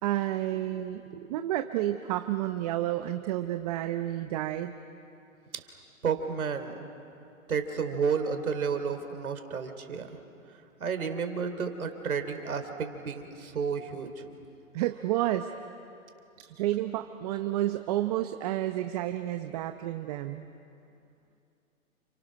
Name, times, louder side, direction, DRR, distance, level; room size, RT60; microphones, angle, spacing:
voice 1, 0.0-1.0 1.3-4.7 14.7-15.5 16.5-20.5, right 14 dB, 30° right, 8 dB, 0.8 m, -30 dB
voice 2, 6.0-6.9 7.5-10.2 10.8-14.3, right 6 dB, 85° right, 7 dB, 3.4 m, -31 dB
29.5 x 29.5 x 6.5 m, 2.6 s
hypercardioid pair, 145°, 42 cm